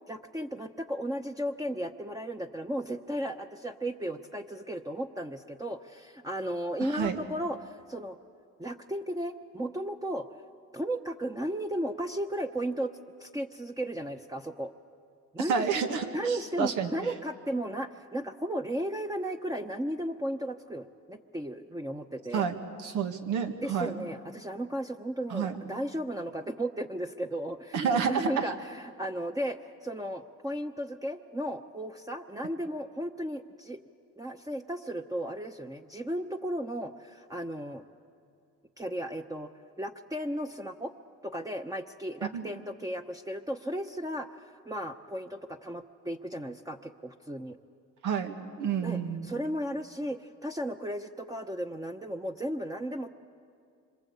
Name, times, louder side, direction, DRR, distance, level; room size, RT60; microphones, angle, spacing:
voice 1, 0.1-8.2 8.6-10.3 10.7-14.7 15.3-15.6 16.1-22.5 23.6-33.8 34.2-37.8 38.8-39.5 39.8-40.9 41.2-47.6 48.8-53.1, right 1 dB, 10° right, 3 dB, 1.0 m, -35 dB
voice 2, 6.9-7.2 15.5-16.9 22.3-22.5 22.8-24.1 25.3-25.5 27.7-28.5 42.3-42.5 48.0-49.3, right 6 dB, 90° right, 6 dB, 2.0 m, -30 dB
26.5 x 25.5 x 8.2 m, 2.3 s
cardioid pair, 90°, 30 cm